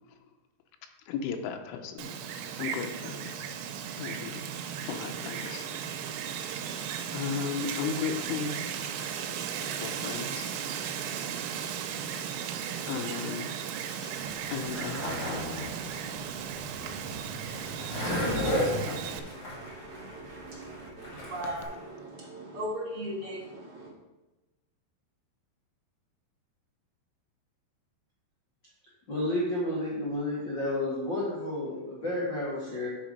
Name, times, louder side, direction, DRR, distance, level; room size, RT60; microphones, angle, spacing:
voice 1, 1.1-2.2 2.6-3.3 4.0-4.4 4.8-5.7 6.7-9.3 9.6-10.5 12.9-13.5 14.0-14.2 14.5-15.8, left 6 dB, 90° left, 5 dB, 3.3 m, -36 dB
Wind, 2.0-19.2, right 8 dB, 85° right, 3.0 m, -36 dB
Skateboard, 14.2-21.6, left 1 dB, 35° left, 1.7 m, -34 dB
voice 2, 18.6-23.9, right 1 dB, 50° right, -5 dB, 1.7 m, -39 dB
voice 3, 29.1-32.9, left 1 dB, 65° left, -7 dB, 1.1 m, -31 dB
7.4 x 6.0 x 5.2 m, 1.1 s
omnidirectional pair, 5.4 m